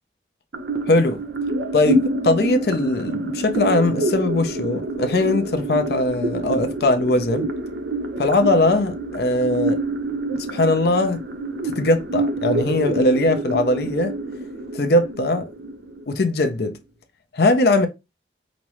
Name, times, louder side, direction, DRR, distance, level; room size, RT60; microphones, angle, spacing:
sound 1, 0.5-16.5, right 1 dB, 75° right, 0.7 m, -27 dB
voice 1, 0.9-1.2 1.7-7.5 8.2-9.8 10.5-11.2 11.6-14.1 14.7-15.5 16.1-16.8 17.3-17.9, left 2 dB, 60° left, 0.5 m, -20 dB
5.0 x 2.0 x 3.0 m
head